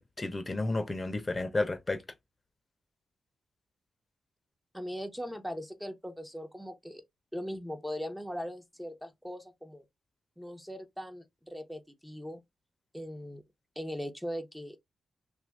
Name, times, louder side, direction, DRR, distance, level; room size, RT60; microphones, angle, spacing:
voice 1, 0.0-2.0, left 2 dB, 30° left, 1.0 m, -32 dB
voice 2, 4.7-7.0 7.3-9.8 10.4-12.4 12.9-13.4 13.8-14.8, equal, ahead, 1.0 m, -39 dB
2.7 x 2.6 x 3.5 m
cardioid pair, 55°, 0 cm